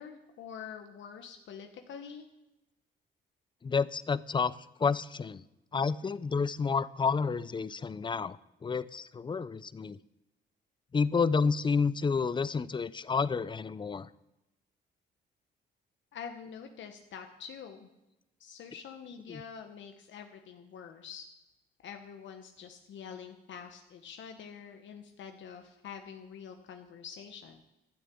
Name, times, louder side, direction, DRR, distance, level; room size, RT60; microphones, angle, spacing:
voice 1, 0.0-2.3 16.1-17.9 18.4-21.3 21.8-27.6, left 7 dB, 70° left, 5 dB, 1.1 m, -46 dB
voice 2, 3.6-5.4 5.7-10.0 10.9-14.1 19.3-19.4, left 5 dB, 25° left, 18 dB, 0.5 m, -30 dB
13.0 x 6.8 x 8.5 m, 0.94 s
cardioid pair, 90°, 20 cm